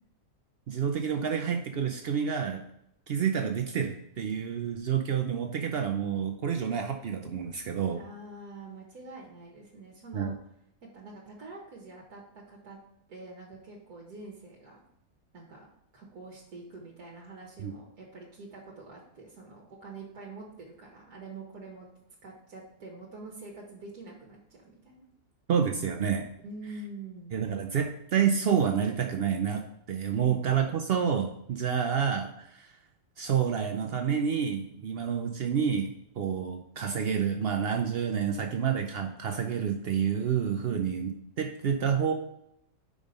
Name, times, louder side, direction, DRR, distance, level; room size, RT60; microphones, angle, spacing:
voice 1, 0.7-2.6 3.1-8.0 10.1-10.3 17.6-17.7 25.5-26.2 27.3-29.6 29.9-32.7 33.2-41.1 41.4-42.1, right 7 dB, 85° right, 4 dB, 0.5 m, -28 dB
voice 2, 8.0-10.3 10.9-12.8 13.1-14.8 15.3-15.7 15.9-21.9 22.2-25.1 26.4-27.3 30.2-30.4 40.6-40.8, right 3 dB, 70° right, -2 dB, 1.6 m, -46 dB
5.3 x 5.0 x 5.1 m, 0.75 s
omnidirectional pair, 1.7 m